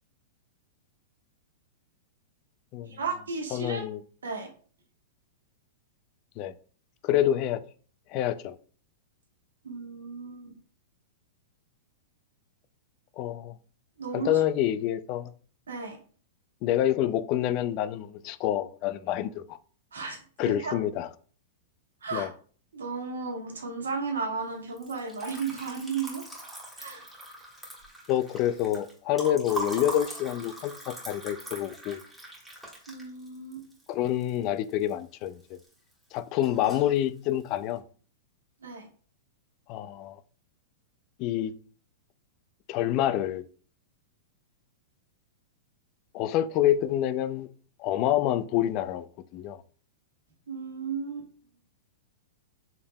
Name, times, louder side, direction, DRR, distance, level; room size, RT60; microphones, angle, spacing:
voice 1, 2.8-3.9 4.2-4.5 9.6-10.6 14.0-14.4 15.7-16.0 19.9-20.7 22.0-22.3 22.7-26.2 26.8-27.1 32.9-33.7 38.6-38.9 50.5-51.3, right 5 dB, 85° right, 1.3 m, -34 dB
voice 2, 3.5-4.0 6.4-6.5 7.0-7.6 8.1-8.6 13.2-13.6 14.1-15.3 16.6-19.6 20.4-21.1 22.1-22.3 28.1-32.0 33.9-35.6 36.1-37.8 39.7-40.2 41.2-41.5 42.7-43.4 46.1-47.5 47.8-49.1 49.3-49.6, left 12 dB, 45° left, 0.3 m, -27 dB
Liquid, 24.7-34.9 35.3-35.9 36.2-37.0, right 1 dB, ahead, 1.6 m, -41 dB
4.5 x 3.4 x 2.2 m
hypercardioid pair, 115°, 0 cm